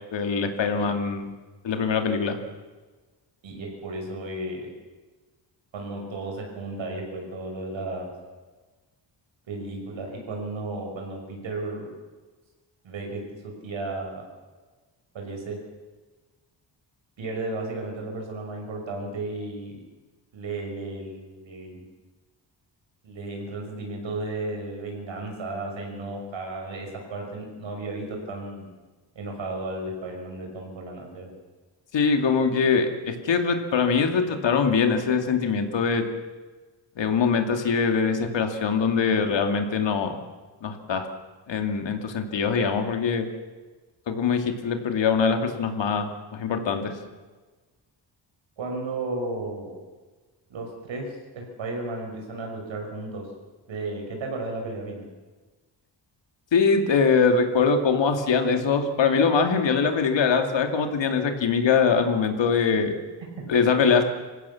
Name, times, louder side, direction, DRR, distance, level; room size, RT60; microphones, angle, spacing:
voice 1, 0.1-1.3 1.6-2.4 31.9-36.1 37.0-40.1 40.6-41.1 41.5-43.3 44.1-46.9 56.5-62.9 63.5-64.0, left 5 dB, 75° left, 5 dB, 2.6 m, -23 dB
voice 2, 3.4-4.7 5.7-8.1 9.5-11.9 12.8-14.2 15.1-15.6 17.2-19.8 20.3-21.8 23.0-28.7 29.1-31.3 48.6-49.8 50.5-53.3 53.7-55.1 63.4-63.5, right 2 dB, 80° right, 2 dB, 6.1 m, -34 dB
26.0 x 16.0 x 7.2 m, 1.3 s
wide cardioid pair, 160°, 45 cm